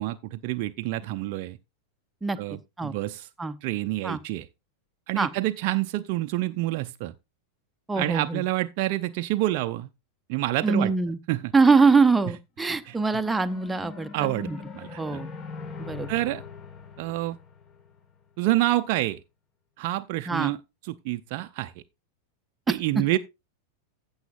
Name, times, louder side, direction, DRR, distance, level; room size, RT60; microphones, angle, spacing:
voice 1, 0.0-1.6 2.4-3.3 3.6-4.5 5.1-7.1 7.9-9.9 10.3-10.9 11.3-11.5 12.9-13.0 14.1-14.5 14.7-15.2 16.1-16.4 17.0-17.4 18.4-19.2 19.8-20.6 20.9-21.7 22.7-23.2, right 16 dB, 45° right, 0.5 m, -27 dB
voice 2, 7.9-8.4 10.6-11.2 11.5-14.1 14.4-14.6 15.0-15.3 15.8-16.1 20.3-20.5 22.7-22.8, right 4 dB, 10° right, 0.8 m, -23 dB
sound 1, 12.8-18.2, left 5 dB, 30° left, 1.4 m, -42 dB
15.0 x 7.1 x 2.5 m
figure-of-eight pair, 90°, 0 cm